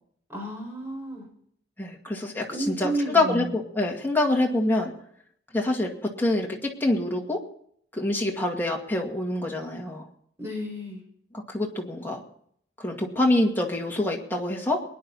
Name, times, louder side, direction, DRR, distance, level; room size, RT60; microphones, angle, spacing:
voice 1, 0.3-1.3 2.5-3.6 10.4-11.0, right 1 dB, 15° right, -2 dB, 5.5 m, -31 dB
voice 2, 1.8-4.9 5.5-7.4 7.9-10.1 11.3-12.2 12.8-14.8, left 2 dB, 10° left, -1 dB, 2.2 m, -26 dB
23.0 x 10.5 x 4.2 m, 0.66 s
head